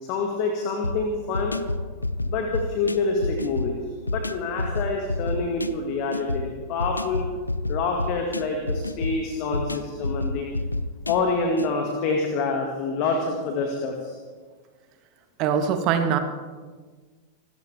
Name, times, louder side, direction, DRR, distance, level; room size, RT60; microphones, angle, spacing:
voice 1, 0.0-1.6 2.2-3.8 4.1-7.2 7.7-10.5 11.1-14.1, left 3 dB, 40° left, 2 dB, 2.1 m, -27 dB
sound 1, 0.8-11.7, left 2 dB, 80° left, 0.5 m, -30 dB
voice 2, 15.4-16.2, right 7 dB, 40° right, 7 dB, 1.6 m, -22 dB
25.5 x 13.5 x 3.6 m, 1.4 s
figure-of-eight pair, 90°, 0 cm